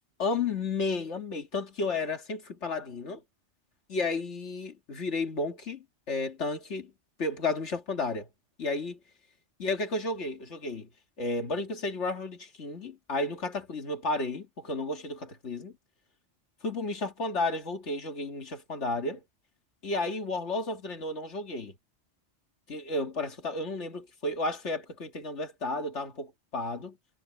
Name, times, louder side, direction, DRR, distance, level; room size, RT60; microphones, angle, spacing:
voice 1, 0.2-3.2 3.9-6.9 7.2-8.3 8.6-9.0 9.6-10.9 11.2-15.7 16.6-19.2 19.8-21.7 22.7-27.0, left 3 dB, 75° left, 2.4 m, -32 dB
omnidirectional pair, 1.2 m